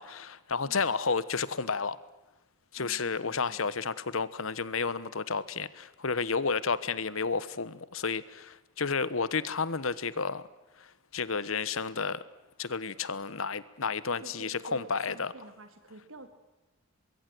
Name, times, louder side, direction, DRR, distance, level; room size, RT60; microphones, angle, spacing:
voice 1, 0.0-2.0 2.7-10.4 10.8-12.2 12.6-15.3, left 5 dB, 75° left, 17 dB, 1.2 m, -31 dB
voice 2, 2.8-3.6 14.2-16.3, right 2 dB, 75° right, 9 dB, 2.9 m, -49 dB
24.0 x 22.0 x 7.9 m, 1.0 s
head